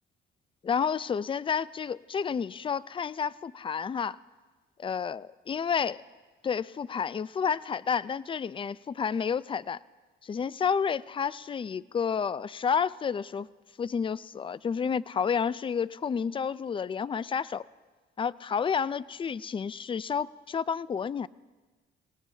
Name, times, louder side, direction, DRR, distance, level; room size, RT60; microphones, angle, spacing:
voice 1, 0.6-4.2 4.8-6.0 6.4-9.8 10.2-13.5 13.8-17.7 18.2-21.3, left 6 dB, 25° left, 18 dB, 0.4 m, -30 dB
28.0 x 18.0 x 2.8 m, 1.3 s
cardioid pair, 90°, 20 cm